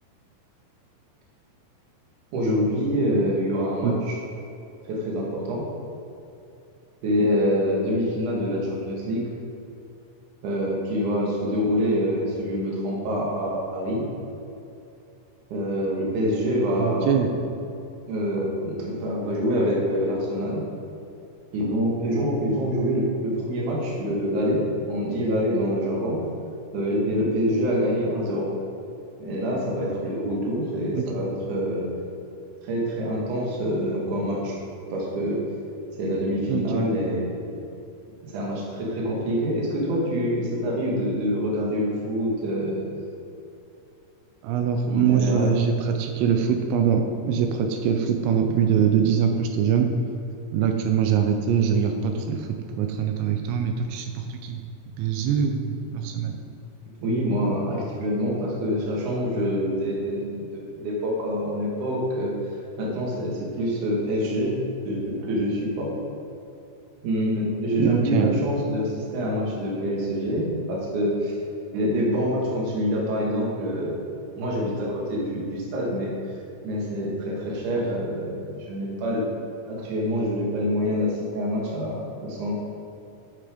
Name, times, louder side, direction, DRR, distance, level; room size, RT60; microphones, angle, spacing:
voice 1, 2.3-4.2 4.9-5.7 7.0-9.3 10.4-14.1 15.5-17.2 18.1-20.6 21.5-26.2 26.7-28.5 29.2-31.9 32.6-34.6 34.9-35.4 36.0-37.4 38.2-42.9 44.9-45.6 57.0-65.9 67.0-71.4 71.7-76.4 76.6-79.3 79.6-82.5, equal, 55° right, -3 dB, 2.6 m, -26 dB
voice 2, 16.8-17.3 30.9-31.0 36.5-36.9 44.4-49.9 50.5-52.5 52.8-54.6 55.0-56.4 67.8-68.3, right 7 dB, 85° right, 5 dB, 2.9 m, -23 dB
9.2 x 6.8 x 5.0 m, 2.7 s
omnidirectional pair, 5.2 m